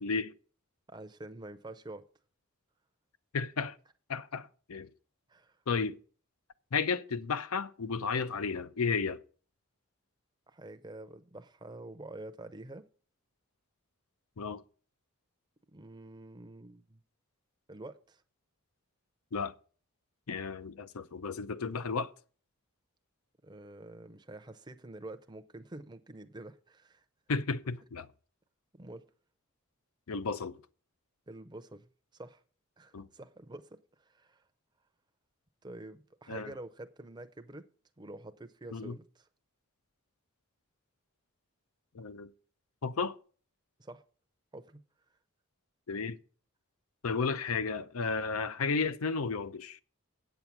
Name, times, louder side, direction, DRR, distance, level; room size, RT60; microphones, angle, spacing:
voice 1, 0.0-0.3 3.3-3.8 4.1-4.9 5.7-6.0 6.7-9.2 14.4-14.6 19.3-19.5 20.3-22.1 27.3-28.1 30.1-30.6 32.9-33.1 36.3-36.5 38.7-39.0 41.9-42.3 42.8-43.2 45.9-46.2 47.0-49.8, left 5 dB, 80° left, 0.6 m, -33 dB
voice 2, 0.9-2.0 5.3-5.6 10.5-12.9 15.7-17.0 17.7-18.2 23.4-27.0 28.7-29.1 31.3-32.4 32.8-34.4 35.6-37.7 38.0-39.3 43.8-44.0 44.5-44.8, right 2 dB, 20° right, 0.6 m, -47 dB
8.8 x 7.1 x 6.1 m
head